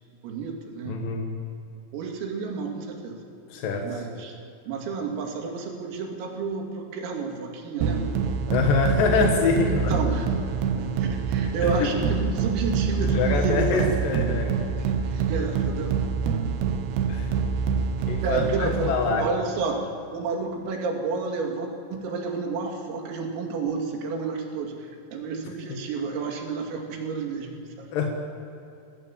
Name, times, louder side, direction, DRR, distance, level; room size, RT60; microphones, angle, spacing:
voice 1, 0.2-1.0 1.9-3.2 3.8-4.4 4.7-8.2 9.7-10.3 10.8-14.0 14.8-15.9 18.2-27.9, right 4 dB, 90° right, 2 dB, 5.2 m, -30 dB
voice 2, 0.9-1.3 3.5-4.0 8.5-9.9 11.8-11.9 13.0-14.6 17.1-17.4 18.1-19.2 25.7-25.8 27.9-28.1, left 4 dB, 60° left, 2 dB, 2.5 m, -25 dB
sound 1, 7.8-19.3, right 6 dB, 70° right, 2.7 m, -26 dB
26.0 x 17.0 x 7.4 m, 2.7 s
omnidirectional pair, 5.8 m